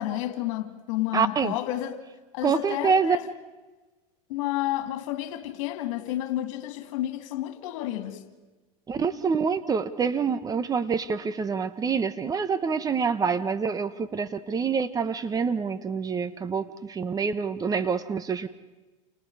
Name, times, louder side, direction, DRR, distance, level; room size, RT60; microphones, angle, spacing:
voice 1, 0.0-2.0 2.3-3.2 4.3-8.2, left 14 dB, 65° left, 2.9 m, -30 dB
voice 2, 1.1-1.5 2.4-3.2 8.9-18.5, right 6 dB, 20° right, 1.1 m, -26 dB
29.5 x 29.0 x 4.9 m
hypercardioid pair, 120°, 18 cm